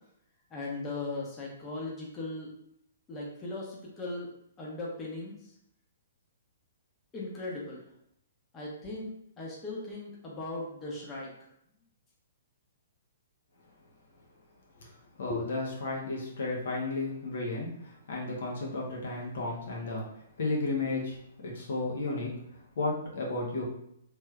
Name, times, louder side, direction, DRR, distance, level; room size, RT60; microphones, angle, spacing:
voice 1, 0.5-2.5 3.1-4.3 4.6-5.5 7.1-7.8 8.5-11.3, left 2 dB, 20° left, -4 dB, 0.9 m, -38 dB
voice 2, 14.8-21.2 21.4-23.6, left 2 dB, 70° left, -3 dB, 1.0 m, -33 dB
3.2 x 3.0 x 2.4 m, 0.75 s
hypercardioid pair, 125°, 0 cm